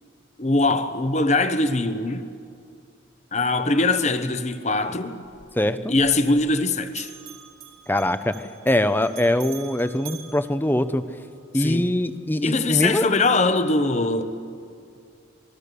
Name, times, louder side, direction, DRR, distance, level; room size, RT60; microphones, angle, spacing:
voice 1, 0.4-2.3 3.3-5.2 5.9-7.1 11.5-11.9 12.4-14.2, left 2 dB, 35° left, 1.0 m, -22 dB
Bell, 5.2-6.6 6.9-11.4, right 10 dB, 80° right, 3.0 m, -45 dB
voice 2, 5.6-5.9 7.9-8.3 8.6-11.0 11.5-13.1, left 1 dB, 10° left, 0.7 m, -22 dB
27.0 x 21.0 x 6.9 m
head